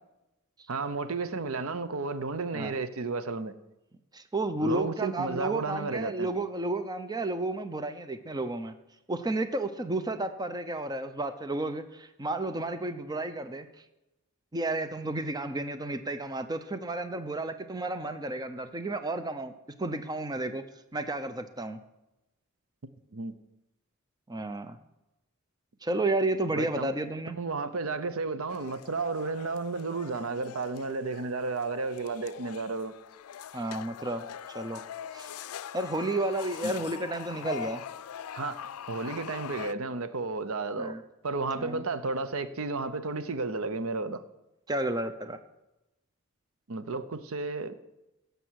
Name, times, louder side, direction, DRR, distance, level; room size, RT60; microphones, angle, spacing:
voice 1, 0.7-3.5 4.6-6.3 23.1-23.3 26.6-26.9 27.4-32.9 36.6-36.7 38.3-41.0 41.2-44.2 46.7-47.7, right 3 dB, 70° right, 0.7 m, -32 dB
voice 2, 4.1-8.7 9.1-13.7 14.5-19.5 19.8-20.6 20.9-21.8 24.3-24.8 25.8-27.4 33.5-34.8 35.1-35.3 35.7-37.8 40.8-41.0 41.6-41.8 44.7-45.4, right 2 dB, 20° right, 0.6 m, -32 dB
sound 1, 28.5-39.7, left 8 dB, 85° left, 0.4 m, -43 dB
16.5 x 6.9 x 6.4 m
head